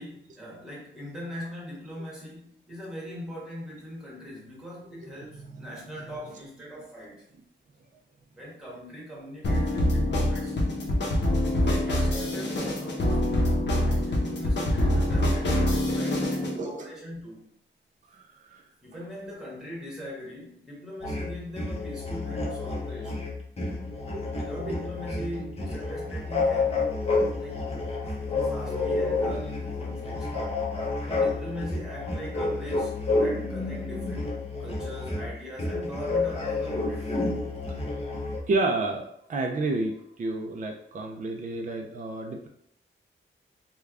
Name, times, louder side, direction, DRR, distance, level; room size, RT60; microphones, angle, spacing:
voice 1, 0.0-7.2 8.3-10.5 11.6-17.4 18.8-23.3 24.3-27.1 27.4-27.6 28.2-30.4 31.1-37.2, equal, 5° right, -5 dB, 1.3 m, -41 dB
voice 2, 5.0-5.7 6.0-6.1 16.5-16.9 18.1-18.6 24.1-24.2 24.6-24.8 38.5-42.5, right 2 dB, 40° right, 2 dB, 0.4 m, -31 dB
sound 1, 9.4-16.6, left 1 dB, 60° left, 0.8 m, -25 dB
sound 2, 21.0-38.4, left 3 dB, 30° left, 0.9 m, -29 dB
3.3 x 2.3 x 3.5 m, 0.75 s
wide cardioid pair, 110°, 20 cm